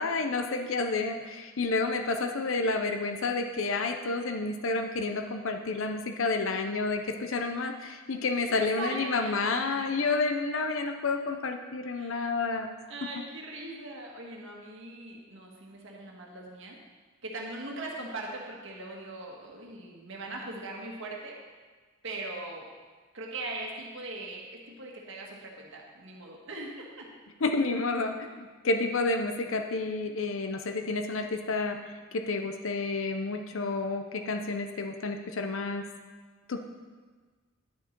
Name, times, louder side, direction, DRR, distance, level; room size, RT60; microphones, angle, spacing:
voice 1, 0.0-12.7 27.4-31.8 32.1-35.8 36.5-36.6, left 3 dB, 70° left, 6 dB, 0.7 m, -30 dB
voice 2, 8.4-10.0 12.0-12.3 12.9-16.8 17.2-21.4 22.0-22.7 23.1-27.1, right 2 dB, 65° right, -1 dB, 1.6 m, -40 dB
10.5 x 7.1 x 4.5 m, 1.4 s
head